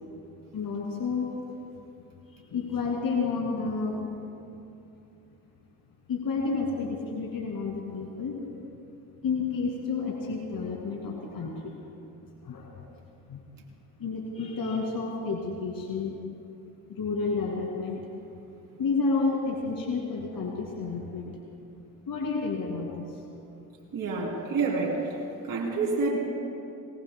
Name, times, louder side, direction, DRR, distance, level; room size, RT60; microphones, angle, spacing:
voice 1, 0.5-1.3 2.3-4.0 6.1-8.4 9.2-11.7 12.4-13.0 13.3-13.4 14.0-16.2 16.9-18.0 18.8-21.3 22.1-23.2, left 4 dB, 60° left, 0 dB, 2.3 m, -30 dB
voice 2, 23.9-25.2 25.4-26.2, right 3 dB, 60° right, -3 dB, 3.2 m, -28 dB
23.0 x 19.5 x 2.2 m, 2.7 s
supercardioid pair, 55°, 40 cm